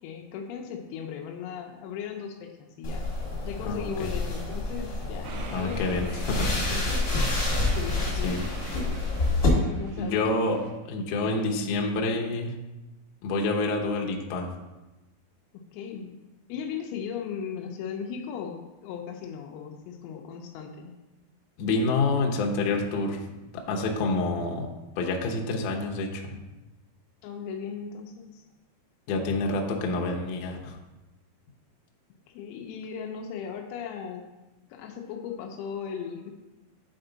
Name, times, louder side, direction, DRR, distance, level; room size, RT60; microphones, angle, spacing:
voice 1, 0.0-3.1 3.4-8.5 9.7-10.3 11.2-11.5 15.5-16.2 16.5-21.0 27.2-28.4 32.3-34.3 34.7-36.3, left 7 dB, 90° left, 3 dB, 2.6 m, -37 dB
sound 1, 2.8-9.5, left 2 dB, 50° left, 1.1 m, -28 dB
voice 2, 3.6-4.1 5.5-6.7 8.2-8.4 10.0-10.6 10.9-12.5 13.2-14.5 21.6-23.2 23.7-24.7 25.0-26.4 29.1-30.8, left 3 dB, 75° left, 0 dB, 1.9 m, -28 dB
sound 2, 5.2-10.7, right 4 dB, 80° right, 2.7 m, -43 dB
9.1 x 4.4 x 3.8 m, 1.1 s
omnidirectional pair, 4.4 m